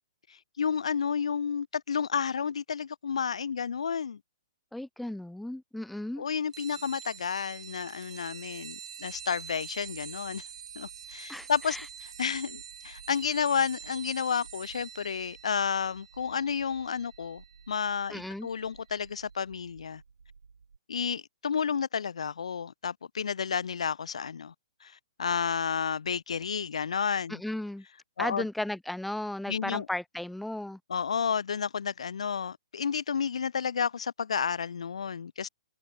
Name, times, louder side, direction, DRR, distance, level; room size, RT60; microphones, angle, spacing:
voice 1, 0.3-4.2 6.2-10.4 10.8-20.0 20.9-24.5 24.8-27.4 28.2-28.4 29.5-29.9 30.9-35.5, left 6 dB, 80° left, 0.3 m, -31 dB
voice 2, 4.7-6.3 11.3-11.9 18.1-18.5 27.3-27.8 28.2-30.8, left 1 dB, ahead, 0.5 m, -35 dB
sound 1, 6.5-18.6, right 8 dB, 65° right, 2.6 m, -46 dB
sound 2, 9.1-20.8, right 5 dB, 85° right, 3.2 m, -56 dB
hypercardioid pair, 135°, 3 cm